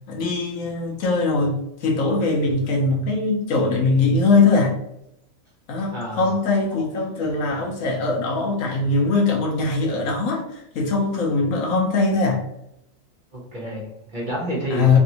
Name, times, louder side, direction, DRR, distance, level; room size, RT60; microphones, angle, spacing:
voice 1, 0.1-4.8 5.7-12.4 14.7-15.0, left 3 dB, 80° left, 1.2 m, -21 dB
voice 2, 5.9-6.2 13.3-15.0, equal, 40° right, 1.0 m, -29 dB
3.2 x 2.6 x 2.8 m
omnidirectional pair, 1.4 m